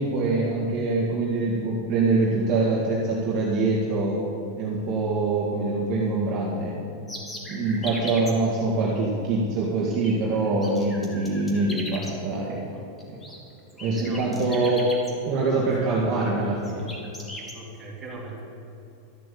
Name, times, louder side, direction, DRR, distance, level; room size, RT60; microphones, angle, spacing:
voice 1, 0.0-4.2 4.6-6.7 7.5-12.6 13.8-14.9 15.2-16.9, right 3 dB, 30° right, -5 dB, 1.9 m, -24 dB
sound 1, 7.1-8.3 9.9-10.1 10.4-12.1 13.0-13.4 13.7-15.1 16.0-16.2 16.6-17.5, equal, 10° left, 1.6 m, -38 dB
voice 2, 13.7-14.8 15.8-15.9 17.5-18.4, right 2 dB, 10° right, -6 dB, 2.9 m, -40 dB
13.0 x 7.6 x 8.6 m, 2.9 s
supercardioid pair, 175°, 0 cm